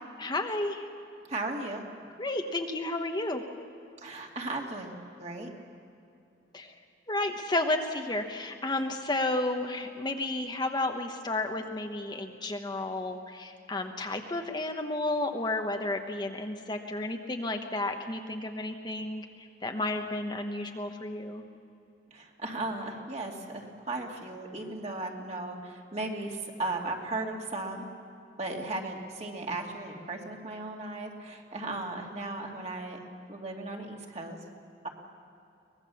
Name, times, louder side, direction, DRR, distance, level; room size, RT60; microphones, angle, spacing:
voice 1, 0.2-0.8 2.2-3.4 6.5-6.7 7.1-21.4, left 2 dB, 25° left, 4 dB, 1.1 m, -32 dB
voice 2, 1.3-1.8 4.0-5.5 22.1-27.9 28.4-33.0 33.3-34.4 34.8-34.9, right 2 dB, 40° right, 1 dB, 2.5 m, -36 dB
23.5 x 20.0 x 7.1 m, 2.6 s
head